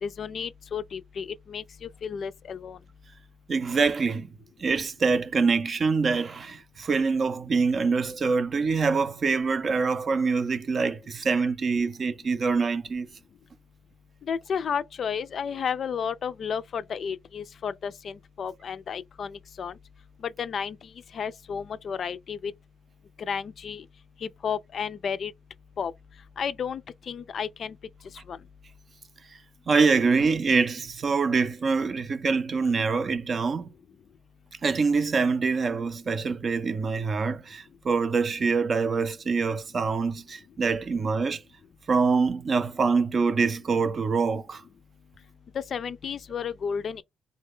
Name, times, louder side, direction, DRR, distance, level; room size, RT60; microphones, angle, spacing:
voice 1, 0.0-2.8 14.3-19.7 20.2-20.8 21.1-22.5 23.2-23.8 24.2-25.3 25.8-25.9 26.4-26.8 27.1-27.8 28.3-28.4 45.5-47.0, left 7 dB, 60° left, 0.3 m, -32 dB
voice 2, 3.5-4.3 4.6-13.1 29.7-33.7 34.6-41.4 41.9-44.6, right 4 dB, 45° right, 0.5 m, -25 dB
3.1 x 2.2 x 3.5 m
supercardioid pair, 70°, 0 cm